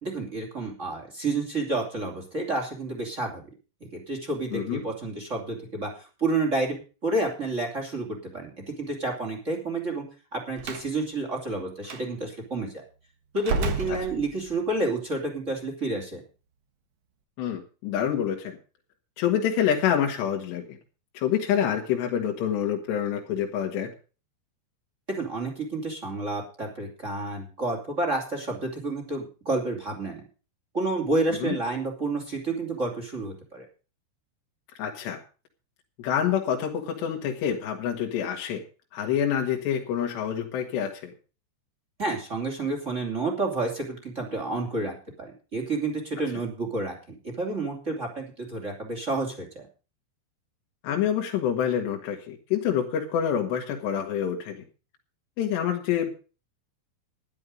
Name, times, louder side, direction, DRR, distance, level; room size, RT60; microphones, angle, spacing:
voice 1, 0.0-3.4 4.1-6.8 7.0-8.1 8.3-10.0 10.3-12.8 13.3-16.2 25.1-30.2 30.7-33.7 42.0-47.0 47.2-49.7, right 2 dB, 20° right, 3 dB, 2.2 m, -30 dB
voice 2, 4.5-4.8 13.9-14.0 17.4-18.6 19.2-20.8 21.2-23.9 31.4-31.6 34.8-35.2 36.0-38.6 38.9-41.1 50.8-54.6 55.4-56.1, left 9 dB, 70° left, 1 dB, 3.7 m, -27 dB
Slam, 10.6-10.9 11.8-12.0 13.4-14.7, right 4 dB, 70° right, 1.5 m, -30 dB
12.5 x 11.0 x 5.1 m, 0.35 s
omnidirectional pair, 5.4 m